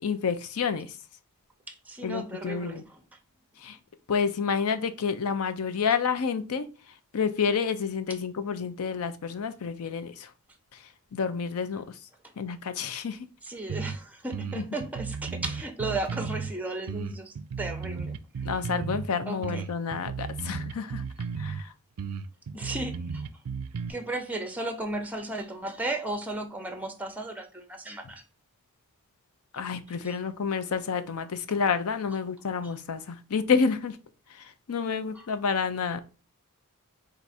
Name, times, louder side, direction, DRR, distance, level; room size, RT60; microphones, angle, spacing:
voice 1, 0.0-0.9 2.0-2.8 3.6-3.8 4.1-6.7 7.1-10.3 11.1-11.9 12.4-13.2 14.5-14.7 18.4-21.0 21.4-21.7 29.5-34.0 34.7-36.0, left 6 dB, 75° left, 0.5 m, -29 dB
voice 2, 1.7-2.8 13.4-18.2 19.3-19.6 22.5-23.3 23.9-28.2 30.0-30.2 35.1-35.3, right 2 dB, 5° right, 0.6 m, -35 dB
sound 1, 13.7-14.0 14.3-16.5 16.9-19.1 19.4-21.6 22.0-23.9, right 5 dB, 80° right, 0.4 m, -34 dB
4.6 x 2.6 x 4.1 m
head